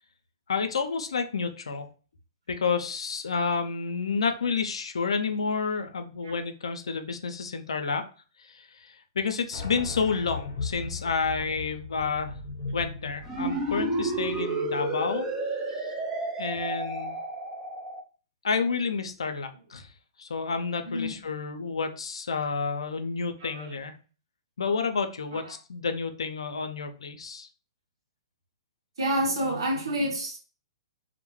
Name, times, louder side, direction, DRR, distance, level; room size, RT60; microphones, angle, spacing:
voice 1, 0.5-1.9 2.5-8.0 8.4-12.4 12.7-15.3 15.8-15.9 16.4-17.2 18.4-19.9 20.2-24.0 24.6-27.5, left 5 dB, 85° left, 0.4 m, -30 dB
sound 1, 9.5-14.8, left 4 dB, 40° left, 0.7 m, -38 dB
sound 2, 13.2-18.0, right 2 dB, 20° right, 0.4 m, -31 dB
voice 2, 20.8-21.2 23.4-23.7 25.3-25.5 29.0-30.4, right 1 dB, 75° right, 1.1 m, -29 dB
2.2 x 2.1 x 3.0 m
hypercardioid pair, 135°, 3 cm